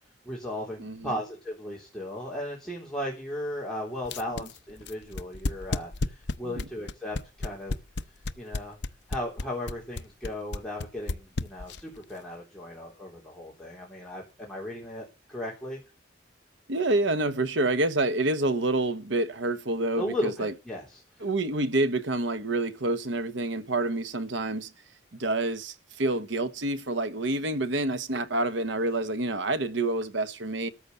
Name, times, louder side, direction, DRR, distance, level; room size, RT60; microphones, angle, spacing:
voice 1, 0.3-7.7 8.4-8.8 9.1-15.8 20.0-21.0, left 1 dB, 5° left, 3.7 m, -36 dB
voice 2, 0.8-1.2 6.4-6.7 16.7-20.5 21.2-24.7 25.1-30.7, right 2 dB, 75° right, 1.1 m, -28 dB
sound 1, 4.0-12.0, left 2 dB, 60° left, 0.8 m, -31 dB
14.0 x 7.0 x 7.0 m
head